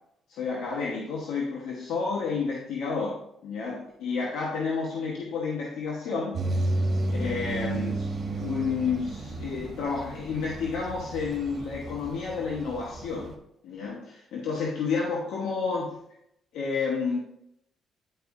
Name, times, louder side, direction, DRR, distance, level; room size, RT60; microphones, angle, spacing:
voice 1, 0.3-6.8 7.2-13.3 13.6-16.0 16.5-17.2, left 5 dB, 85° left, -3 dB, 1.3 m, -30 dB
sound 1, 6.3-13.3, right 2 dB, 50° right, 1.5 m, -32 dB
10.0 x 4.8 x 2.7 m, 0.78 s
cardioid pair, 90°, 0 cm